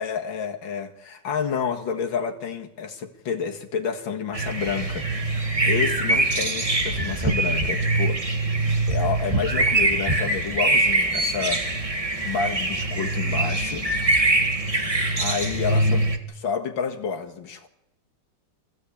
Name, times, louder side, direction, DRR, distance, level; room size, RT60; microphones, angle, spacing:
voice 1, 0.0-8.2 8.9-11.6 12.2-13.9 15.2-16.1 16.4-17.7, left 6 dB, 85° left, 3 dB, 2.4 m, -29 dB
sound 1, 4.3-16.2, right 2 dB, 20° right, 1.5 m, -23 dB
24.0 x 15.5 x 8.5 m, 0.92 s
omnidirectional pair, 2.1 m